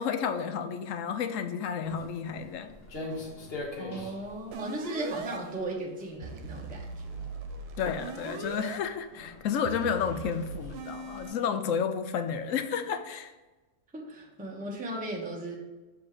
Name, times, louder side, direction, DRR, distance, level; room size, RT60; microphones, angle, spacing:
voice 1, 0.0-2.7 7.8-13.3, left 7 dB, 65° left, 8 dB, 0.9 m, -31 dB
Walk footsteps, 1.8-11.3, left 2 dB, 45° left, 1.2 m, -45 dB
voice 2, 3.8-7.1 13.9-15.5, right 1 dB, 5° right, -2 dB, 0.8 m, -36 dB
sound 1, 4.5-5.4 6.2-8.8 9.7-11.3, right 4 dB, 80° right, 1.2 m, -40 dB
7.1 x 3.5 x 4.9 m, 1.2 s
omnidirectional pair, 1.6 m